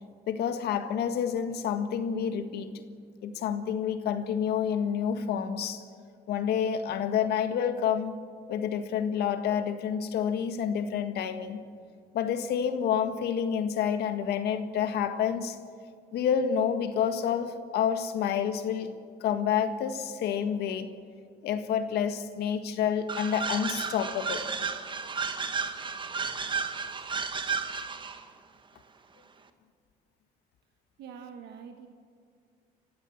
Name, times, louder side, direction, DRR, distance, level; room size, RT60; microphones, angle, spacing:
voice 1, 0.3-2.7 3.2-5.8 6.3-8.2 8.5-11.6 12.1-15.6 16.1-18.9 19.2-20.9 21.4-24.5, left 8 dB, 75° left, 9 dB, 1.7 m, -29 dB
sound 1, 23.1-28.2, right 5 dB, 30° right, 1.5 m, -33 dB
voice 2, 31.0-31.9, right 7 dB, 80° right, 5 dB, 1.6 m, -44 dB
28.0 x 15.5 x 7.3 m, 2.1 s
cardioid pair, 110°, 17 cm